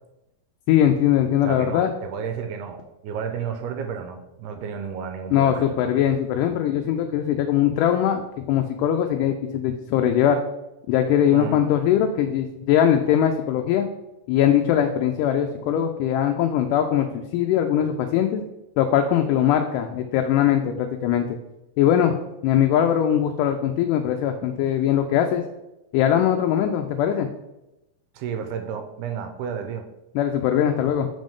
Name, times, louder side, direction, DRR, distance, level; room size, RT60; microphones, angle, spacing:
voice 1, 0.7-1.9 5.3-10.4 10.9-13.9 14.3-18.4 18.8-21.4 21.8-22.2 22.4-25.4 25.9-27.3 30.2-31.1, left 10 dB, 80° left, 4 dB, 2.0 m, -21 dB
voice 2, 1.4-5.9 11.3-11.6 28.2-29.8, right 7 dB, 80° right, 6 dB, 1.9 m, -32 dB
6.0 x 5.2 x 3.6 m, 0.93 s
omnidirectional pair, 3.9 m